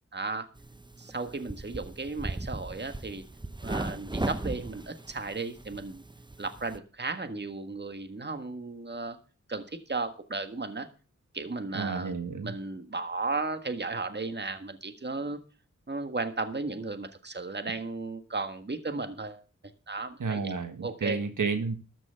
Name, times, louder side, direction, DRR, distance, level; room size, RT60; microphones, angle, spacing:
voice 1, 0.1-0.5 1.0-3.2 3.6-6.0 6.4-9.2 9.5-10.9 11.3-12.1 12.4-15.4 15.9-19.4 19.9-20.5 20.8-21.2, right 3 dB, 35° right, 8 dB, 1.6 m, -35 dB
sound 1, 0.5-6.8, right 2 dB, 15° right, 0.7 m, -38 dB
voice 2, 11.7-12.5 20.2-21.7, right 4 dB, 85° right, 7 dB, 1.5 m, -31 dB
13.5 x 6.2 x 6.9 m, 0.36 s
cardioid pair, 50°, 30 cm